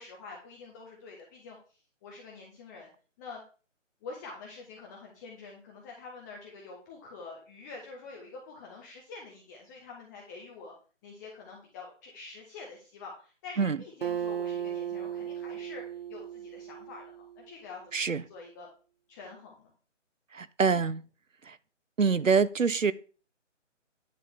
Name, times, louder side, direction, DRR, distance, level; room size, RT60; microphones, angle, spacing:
voice 1, 0.0-2.9 3.2-3.4 4.0-10.7 11.0-17.8 18.1-18.7 19.1-19.7, left 4 dB, 15° left, 1.4 m, -46 dB
Acoustic guitar, 14.0-17.6, right 9 dB, 50° right, 0.7 m, -36 dB
voice 2, 20.3-21.0 21.5-21.6 22.0-22.9, right 5 dB, 85° right, 0.9 m, -25 dB
9.9 x 4.3 x 7.0 m
figure-of-eight pair, 150°, 38 cm